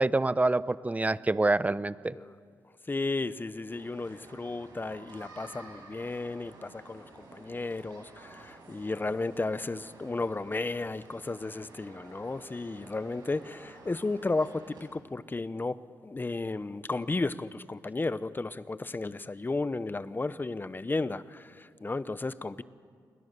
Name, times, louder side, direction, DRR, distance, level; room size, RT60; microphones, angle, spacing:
voice 1, 0.0-2.1, right 2 dB, 20° right, 0.7 m, -26 dB
voice 2, 2.9-22.6, left 3 dB, 25° left, 0.9 m, -34 dB
sound 1, 3.7-14.8, right 2 dB, 85° right, 7.4 m, -52 dB
29.0 x 22.5 x 6.8 m
cardioid pair, 65°, 7 cm